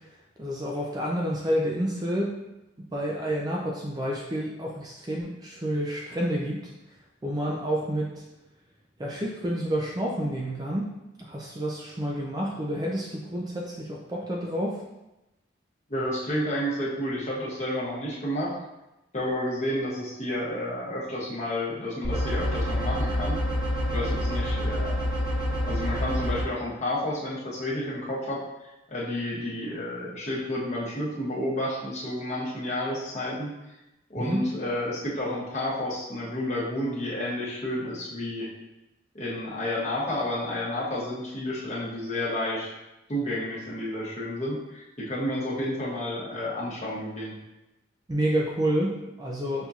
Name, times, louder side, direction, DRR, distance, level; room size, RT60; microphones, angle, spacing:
voice 1, 0.4-2.3 2.9-6.7 7.2-8.2 9.0-10.9 11.2-14.8 34.2-34.4 48.1-49.7, equal, 20° right, -2 dB, 0.3 m, -29 dB
voice 2, 15.9-18.5 19.1-23.4 23.9-25.0 25.6-33.6 34.1-38.5 39.1-42.7 43.1-47.4, left 1 dB, 35° left, -7 dB, 1.0 m, -31 dB
sound 1, 22.0-26.4, equal, 15° left, 1.5 m, -27 dB
6.0 x 2.7 x 2.4 m, 0.96 s
head